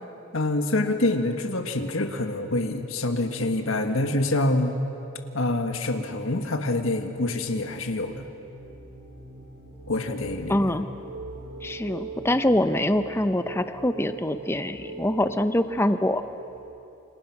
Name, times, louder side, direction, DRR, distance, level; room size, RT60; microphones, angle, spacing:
voice 1, 0.3-4.7 5.3-8.3 9.9-10.8, left 2 dB, 70° left, 6 dB, 1.7 m, -26 dB
sound 1, 6.6-16.6, right 2 dB, 35° right, 7.9 m, -42 dB
voice 2, 10.5-10.9 11.6-16.2, left 1 dB, 10° left, 10 dB, 0.7 m, -24 dB
29.0 x 27.0 x 6.0 m, 2.9 s
head